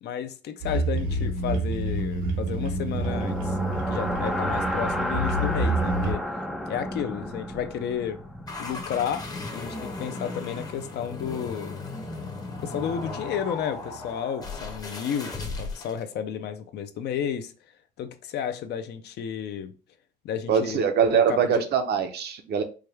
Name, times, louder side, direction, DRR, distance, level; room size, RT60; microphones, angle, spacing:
voice 1, 0.0-3.6 3.9-6.3 6.7-8.2 8.6-9.3 9.5-11.8 12.6-17.5 18.0-19.7 20.2-20.8 21.1-21.6, left 8 dB, 60° left, 0.5 m, -32 dB
sound 1, 0.6-6.1, right 2 dB, 80° right, 1.1 m, -28 dB
sound 2, 3.0-11.0, left 1 dB, ahead, 0.3 m, -33 dB
sound 3, 8.5-16.0, left 3 dB, 20° left, 0.7 m, -36 dB
voice 2, 20.5-22.6, right 7 dB, 55° right, 0.7 m, -23 dB
4.7 x 2.2 x 3.3 m
cardioid pair, 165°, 20 cm